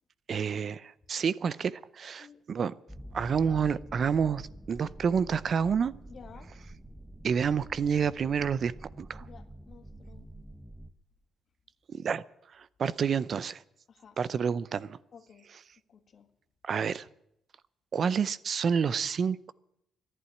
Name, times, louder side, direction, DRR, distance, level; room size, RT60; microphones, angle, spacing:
voice 1, 0.3-2.7 3.1-5.9 7.2-8.7 9.0-9.2 11.9-13.6 14.2-15.0 16.6-17.1 17.9-19.5, right 6 dB, 50° right, 0.5 m, -29 dB
sound 1, 2.9-10.9, right 1 dB, 5° right, 1.0 m, -47 dB
voice 2, 6.1-6.5 9.2-10.3 13.9-14.2 15.1-15.5 15.9-16.3, left 6 dB, 50° left, 1.6 m, -53 dB
11.5 x 11.0 x 9.8 m
cardioid pair, 90°, 0 cm